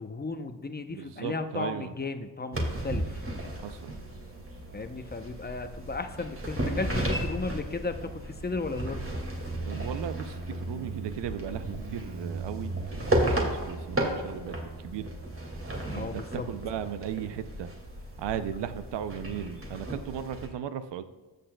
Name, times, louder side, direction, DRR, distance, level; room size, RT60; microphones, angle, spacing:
voice 1, 0.0-3.2 4.7-9.0 15.9-16.5, left 3 dB, 25° left, 8 dB, 0.7 m, -35 dB
voice 2, 0.9-1.9 3.6-4.0 9.6-15.1 15.9-17.7 18.2-21.0, right 9 dB, 90° right, 12 dB, 0.6 m, -36 dB
sound 1, 2.5-20.5, right 1 dB, 30° right, 2.1 m, -34 dB
Motorcycle, 2.5-19.7, right 3 dB, 55° right, 1.0 m, -43 dB
13.0 x 6.6 x 2.2 m, 1.3 s
cardioid pair, 65°, 41 cm